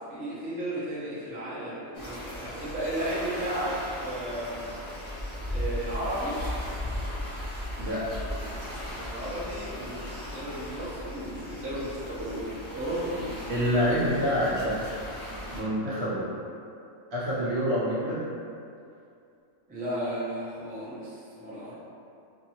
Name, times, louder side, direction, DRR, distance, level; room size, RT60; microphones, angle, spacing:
voice 1, 0.1-4.6 5.5-6.4 8.9-13.4 19.7-21.7, right 1 dB, 15° right, -10 dB, 0.3 m, -34 dB
sound 1, 1.9-15.6, left 1 dB, 35° left, 0.6 m, -37 dB
voice 2, 13.5-14.8 15.5-16.2 17.1-18.2, equal, 60° right, -8 dB, 0.9 m, -27 dB
2.6 x 2.6 x 2.8 m, 2.5 s
omnidirectional pair, 1.4 m